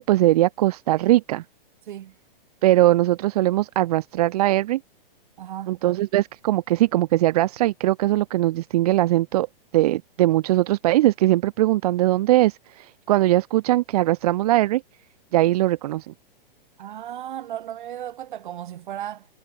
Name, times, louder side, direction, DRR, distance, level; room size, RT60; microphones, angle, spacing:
voice 1, 0.0-1.4 2.6-4.8 5.7-9.5 9.7-14.8 15.3-16.1, right 16 dB, 40° right, 2.4 m, -20 dB
voice 2, 5.4-5.8 16.8-19.3, right 11 dB, 55° right, 7.0 m, -35 dB
hypercardioid pair, 165°, 29 cm